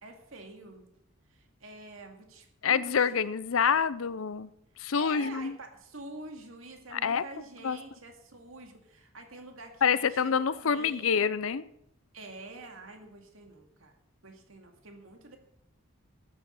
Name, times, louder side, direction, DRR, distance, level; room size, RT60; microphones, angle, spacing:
voice 1, 0.0-0.8 1.3-3.1 3.6-3.8 5.0-11.3 12.1-14.0 14.2-15.4, right 2 dB, 80° right, 4 dB, 2.2 m, -47 dB
voice 2, 2.6-4.5 4.8-5.5 6.9-7.2 7.6-7.8 9.8-11.6, left 6 dB, 80° left, 16 dB, 0.6 m, -27 dB
13.0 x 8.3 x 5.6 m, 0.78 s
head